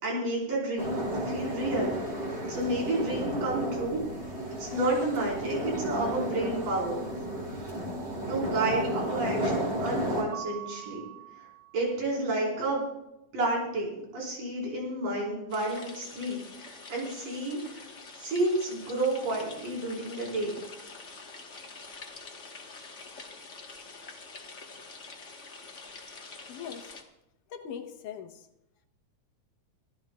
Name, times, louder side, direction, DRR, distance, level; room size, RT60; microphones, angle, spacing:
voice 1, 0.0-1.9 2.5-4.0 4.6-7.1 8.3-11.0 11.4-11.5 11.7-12.8 13.3-17.9 18.1-20.6, right 2 dB, 85° right, -3 dB, 6.5 m, -30 dB
sound 1, 0.8-10.2, right 1 dB, 25° right, 5.2 m, -33 dB
Mallet percussion, 10.3-12.1, right 13 dB, 50° right, 1.6 m, -43 dB
sound 2, 15.5-27.0, left 3 dB, 45° left, 0.9 m, -46 dB
voice 2, 26.5-26.9 27.5-28.5, left 8 dB, 75° left, 6 dB, 2.5 m, -41 dB
26.0 x 14.0 x 2.4 m, 0.87 s
omnidirectional pair, 3.7 m